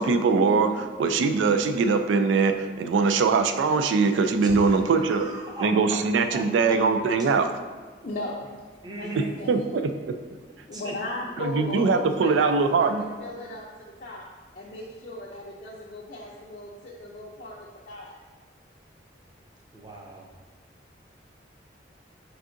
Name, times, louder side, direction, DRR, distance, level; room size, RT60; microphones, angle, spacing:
voice 1, 0.0-5.3 5.6-7.5 9.2-9.9 11.4-13.0, right 4 dB, 90° right, 8 dB, 0.3 m, -22 dB
voice 2, 4.4-6.0 6.3-6.8 8.8-9.3 10.7-10.9 19.7-20.3, right 1 dB, 20° right, -1 dB, 0.6 m, -38 dB
voice 3, 8.0-8.4 8.9-9.7 10.7-14.2 14.5-17.6 17.8-18.2, left 1 dB, 45° left, -5 dB, 0.4 m, -37 dB
4.5 x 3.6 x 2.5 m, 1.5 s
head